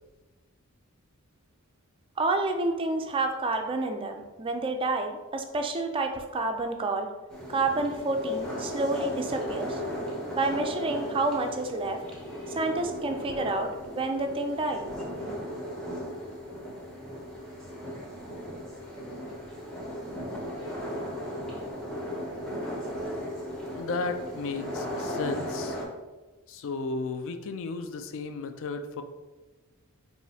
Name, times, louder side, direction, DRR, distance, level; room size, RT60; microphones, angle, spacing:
voice 1, 2.2-7.1 7.5-9.8 10.3-12.0 12.5-14.9, right 2 dB, 25° right, 4 dB, 0.3 m, -29 dB
sound 1, 7.3-25.9, equal, 5° left, 0.7 m, -36 dB
voice 2, 23.7-25.8 26.5-29.0, left 3 dB, 60° left, 8 dB, 0.3 m, -34 dB
4.9 x 2.6 x 2.7 m, 1.2 s
head